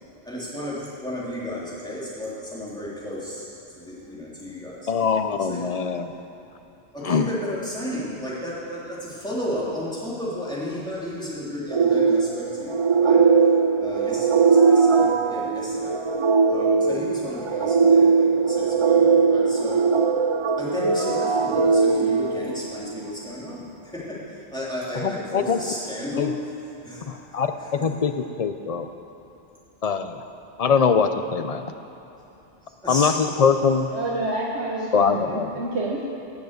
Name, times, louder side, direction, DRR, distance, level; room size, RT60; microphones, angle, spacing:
voice 1, 0.2-3.5 3.7-4.9 5.4-5.6 6.9-13.2 13.8-15.9 16.5-19.9 20.6-26.4 26.8-27.0 27.3-27.7 32.8-33.2 34.8-34.9, left 1 dB, 5° left, -8 dB, 3.1 m, -33 dB
voice 2, 4.9-6.1 7.0-7.3 25.0-25.6 26.2-26.3 27.1-28.9 29.8-30.2 30.6-31.7 32.9-33.9 34.9-35.5, left 6 dB, 45° left, 8 dB, 0.6 m, -22 dB
sound 1, 11.7-23.0, right 5 dB, 50° right, 0.3 m, -20 dB
voice 3, 33.9-36.0, right 2 dB, 85° right, -4 dB, 1.5 m, -28 dB
17.0 x 7.2 x 6.6 m, 2.9 s
omnidirectional pair, 1.1 m